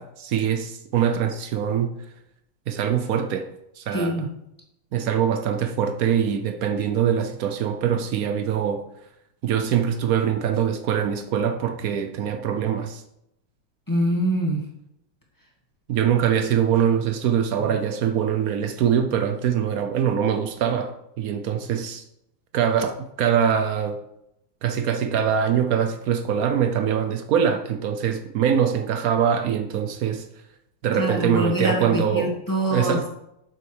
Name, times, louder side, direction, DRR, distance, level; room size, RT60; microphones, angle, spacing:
voice 1, 0.0-1.9 2.7-3.5 3.8-4.3 4.9-8.8 9.4-13.0 15.9-22.0 22.5-24.0 24.6-30.3 30.8-32.4 32.7-33.1, right 8 dB, 90° right, 7 dB, 0.7 m, -23 dB
voice 2, 3.9-4.2 13.9-14.6 17.6-17.7 31.0-33.1, equal, 10° left, -2 dB, 1.6 m, -24 dB
8.1 x 7.0 x 5.0 m, 0.82 s
omnidirectional pair, 2.3 m